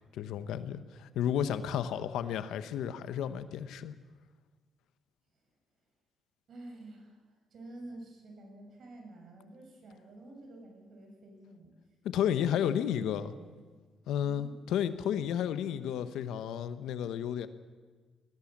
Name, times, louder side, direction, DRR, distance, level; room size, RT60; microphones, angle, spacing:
voice 1, 0.1-3.9 12.1-13.3 14.1-17.5, left 9 dB, 85° left, 12 dB, 1.0 m, -32 dB
voice 2, 6.5-7.2 7.5-11.8 12.4-13.5 14.2-14.6, right 2 dB, 60° right, 3 dB, 6.3 m, -49 dB
20.5 x 17.0 x 7.4 m, 1.4 s
cardioid pair, 90°, 0 cm